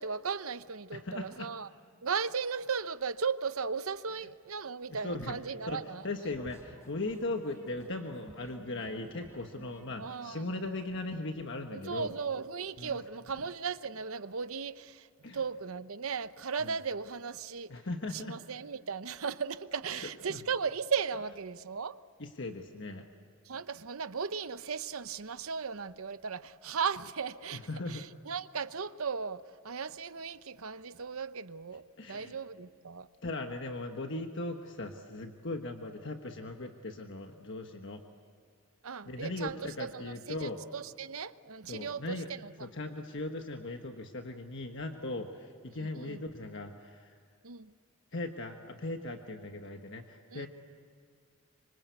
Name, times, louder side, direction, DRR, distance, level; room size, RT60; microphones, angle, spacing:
voice 1, 0.0-1.7 2.0-6.1 10.0-10.5 11.7-15.1 15.3-17.7 18.1-22.0 23.4-33.1 38.8-42.7 45.8-46.2 47.4-47.7 50.3-50.5, right 6 dB, 75° right, 0.8 m, -36 dB
voice 2, 0.9-1.5 4.9-5.4 5.7-5.8 6.0-12.1 12.8-13.0 15.2-15.4 16.6-16.7 17.7-18.4 19.9-20.4 22.2-23.1 27.5-28.0 32.0-32.4 33.2-38.0 39.1-40.6 41.7-42.3 42.6-47.2 48.1-50.5, left 2 dB, 55° left, 1.3 m, -38 dB
sound 1, 6.0-10.9, equal, 15° left, 4.0 m, -55 dB
26.0 x 25.5 x 8.2 m
head